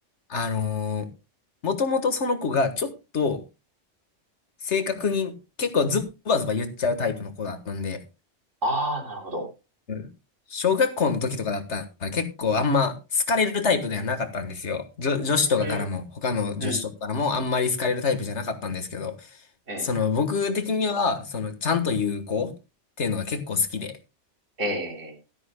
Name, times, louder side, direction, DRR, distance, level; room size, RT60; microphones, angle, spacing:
voice 1, 0.3-1.1 1.6-3.4 4.6-5.3 5.6-8.0 9.9-10.1 10.5-19.1 19.8-22.5 23.0-23.9, left 5 dB, 65° left, 8 dB, 1.8 m, -26 dB
voice 2, 8.6-9.5 15.6-15.8 16.6-16.8 19.7-19.9 24.6-25.1, right 1 dB, 85° right, 2 dB, 3.9 m, -29 dB
16.5 x 12.5 x 2.2 m, 0.27 s
omnidirectional pair, 1.3 m